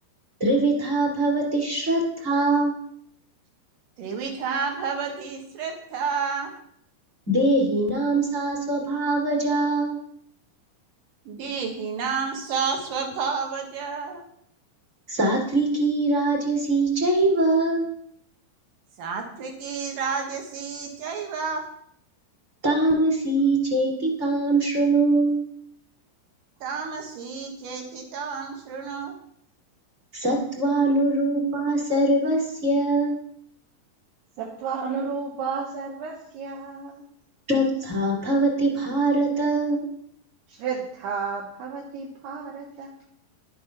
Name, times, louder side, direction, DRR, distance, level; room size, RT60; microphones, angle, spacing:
voice 1, 0.4-2.7 7.3-10.0 15.1-17.9 22.6-25.4 30.1-33.2 37.5-39.9, right 2 dB, 20° right, -1 dB, 2.2 m, -22 dB
voice 2, 4.0-6.5 11.3-14.2 19.0-21.6 26.6-29.1, right 5 dB, 60° right, 2 dB, 3.1 m, -30 dB
voice 3, 34.4-37.0 40.5-42.9, right 5 dB, 75° right, -2 dB, 3.3 m, -32 dB
11.5 x 7.6 x 5.9 m, 0.66 s
omnidirectional pair, 4.9 m